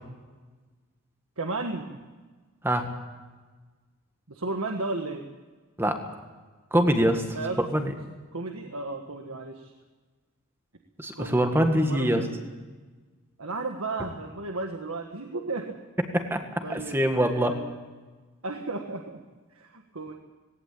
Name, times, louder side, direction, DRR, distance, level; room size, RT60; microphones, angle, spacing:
voice 1, 1.4-2.0 4.3-5.3 7.3-7.6 8.3-9.7 11.2-12.4 13.4-15.8 16.6-17.8 18.4-19.2 19.5-20.1, right 3 dB, 75° right, 3 dB, 1.7 m, -34 dB
voice 2, 6.7-7.2 7.7-7.9 11.0-12.2 16.1-17.6, equal, 10° right, 5 dB, 1.7 m, -24 dB
18.5 x 18.0 x 8.5 m, 1.3 s
head